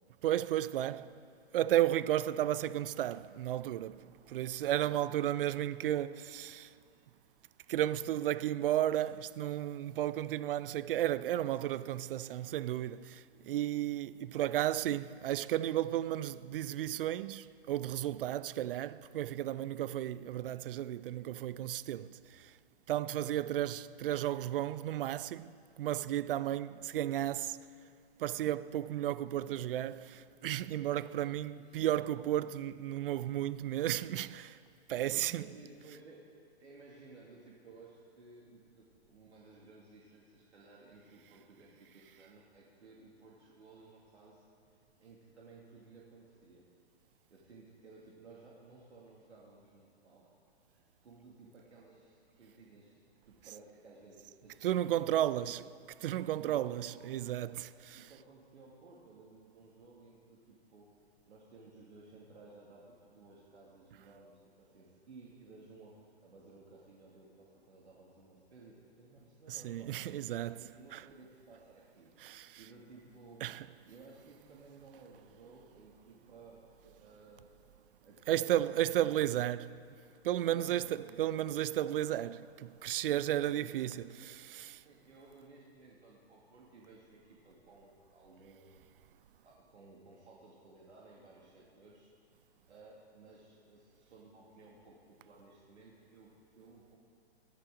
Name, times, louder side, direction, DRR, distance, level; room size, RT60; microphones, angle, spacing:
voice 1, 0.2-1.1 1.5-6.7 7.7-22.5 22.9-25.5 25.8-27.6 28.2-34.6 34.9-35.4 54.6-55.6 56.0-58.0 69.5-70.6 70.9-71.0 72.2-72.6 73.4-73.6 78.3-79.7 80.2-84.0 84.4-84.8, right 12 dB, 55° right, 0.5 m, -33 dB
voice 2, 0.8-1.1 29.4-29.7 31.5-31.9 35.1-36.3 36.6-44.4 45.0-46.6 47.3-50.3 50.7-53.0 53.3-55.6 56.4-57.3 57.9-60.9 61.3-70.0 70.4-73.4 73.8-77.5 78.0-79.5 80.4-81.2 83.1-84.0 84.8-88.8 89.4-92.1 92.7-97.0, right 3 dB, 80° right, 2.4 m, -57 dB
19.5 x 13.5 x 3.8 m
hypercardioid pair, 135°, 33 cm